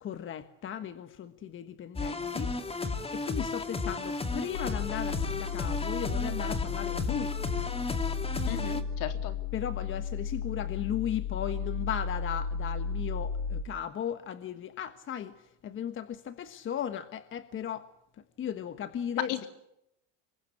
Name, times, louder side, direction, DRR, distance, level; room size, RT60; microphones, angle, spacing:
voice 1, 0.0-7.4 9.5-17.9 18.4-19.4, left 9 dB, 35° left, 1.3 m, -36 dB
sound 1, 2.0-8.8, left 3 dB, 15° left, 2.5 m, -33 dB
sound 2, 4.5-13.6, left 6 dB, 85° left, 3.9 m, -34 dB
voice 2, 8.5-9.4 19.3-19.5, left 13 dB, 60° left, 3.6 m, -36 dB
26.5 x 22.5 x 8.7 m
cardioid pair, 135°, 37 cm